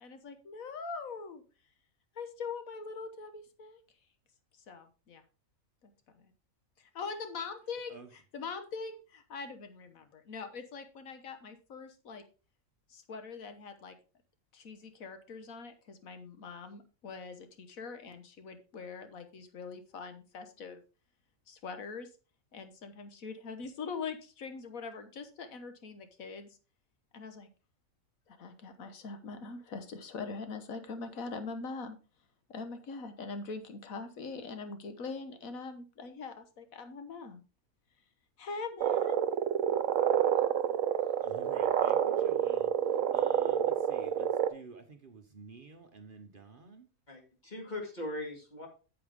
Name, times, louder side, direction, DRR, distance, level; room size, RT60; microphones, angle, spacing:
voice 1, 0.0-1.4 2.1-3.8 4.7-5.2 6.2-6.3 6.8-12.2 12.9-14.0 14.5-20.8 21.5-22.1 22.5-26.5 27.1-27.5 28.3-32.0 32.5-37.4 38.4-39.2, left 4 dB, 85° left, 8 dB, 1.5 m, -42 dB
sound 1, 38.8-44.5, right 9 dB, 75° right, 1.1 m, -28 dB
voice 2, 41.2-42.7 43.1-46.9, right 5 dB, 45° right, 6 dB, 1.0 m, -51 dB
voice 3, 47.1-48.7, left 1 dB, 35° left, 1 dB, 2.3 m, -40 dB
8.6 x 7.8 x 3.5 m, 0.33 s
omnidirectional pair, 1.4 m